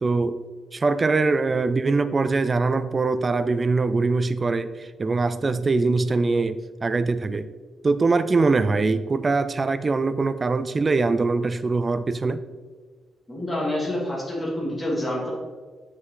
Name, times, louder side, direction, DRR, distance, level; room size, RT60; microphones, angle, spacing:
voice 1, 0.0-0.4 0.7-7.5 7.8-12.4, right 3 dB, 25° right, 12 dB, 0.3 m, -22 dB
voice 2, 13.3-15.3, left 1 dB, 10° left, -4 dB, 2.3 m, -27 dB
7.4 x 6.0 x 3.8 m, 1.5 s
wide cardioid pair, 155°, 0 cm